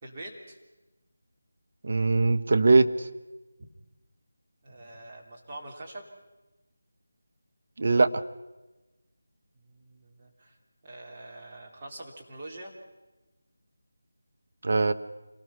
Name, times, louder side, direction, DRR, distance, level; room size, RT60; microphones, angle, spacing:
voice 1, 0.0-0.6 3.6-3.7 4.6-6.1 9.5-10.6 10.8-12.7, right 1 dB, 25° right, -2 dB, 3.3 m, -44 dB
voice 2, 1.8-2.9 7.8-8.1 14.6-14.9, right 3 dB, 50° right, 9 dB, 1.0 m, -21 dB
26.5 x 19.0 x 5.8 m, 1.1 s
figure-of-eight pair, 165°, 0 cm